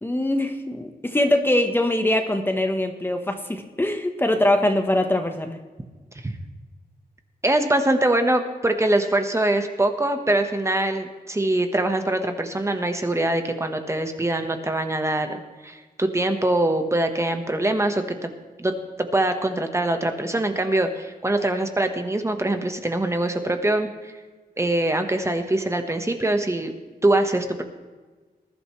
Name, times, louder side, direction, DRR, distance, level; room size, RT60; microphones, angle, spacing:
voice 1, 0.0-5.6, left 1 dB, 15° left, 5 dB, 1.1 m, -22 dB
voice 2, 7.4-18.3 18.6-24.1 24.6-26.7 27.0-27.6, right 1 dB, 15° right, 6 dB, 1.2 m, -23 dB
20.0 x 12.0 x 3.2 m, 1.3 s
wide cardioid pair, 125°, 16 cm